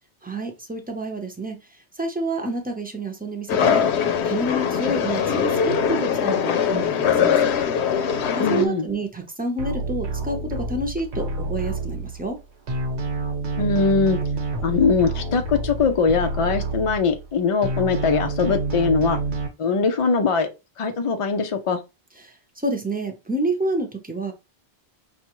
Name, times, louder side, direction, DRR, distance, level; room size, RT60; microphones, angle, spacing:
voice 1, 0.2-1.6 2.0-3.9 4.2-7.4 7.9-8.1 8.4-12.4 22.6-24.3, right 1 dB, 10° right, 0.6 m, -28 dB
sound 1, 3.5-8.7, left 7 dB, 80° left, 0.9 m, -21 dB
voice 2, 8.4-8.9 13.6-14.2 14.6-19.2 19.6-20.5 20.8-21.8, left 4 dB, 55° left, 0.3 m, -21 dB
sound 2, 9.6-12.4 12.7-17.3 17.6-19.5, right 3 dB, 80° right, 1.1 m, -28 dB
5.4 x 2.4 x 3.0 m
omnidirectional pair, 1.1 m